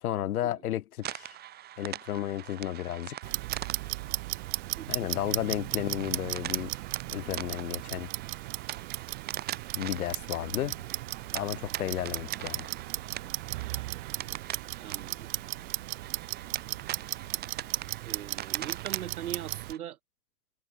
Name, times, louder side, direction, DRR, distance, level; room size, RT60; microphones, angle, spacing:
voice 1, 0.0-1.4 1.8-3.3 4.9-6.7 7.1-8.1 9.7-10.8 11.3-12.7, left 12 dB, 70° left, 0.9 m, -33 dB
sound 1, 1.0-19.8, right 12 dB, 20° right, 0.9 m, -43 dB
Clock, 3.2-19.7, right 20 dB, 50° right, 2.3 m, -36 dB
sound 2, 10.6-18.2, right 6 dB, 85° right, 1.8 m, -53 dB
voice 2, 14.8-15.3 18.0-20.0, right 11 dB, 70° right, 1.6 m, -40 dB
hypercardioid pair, 100°, 45 cm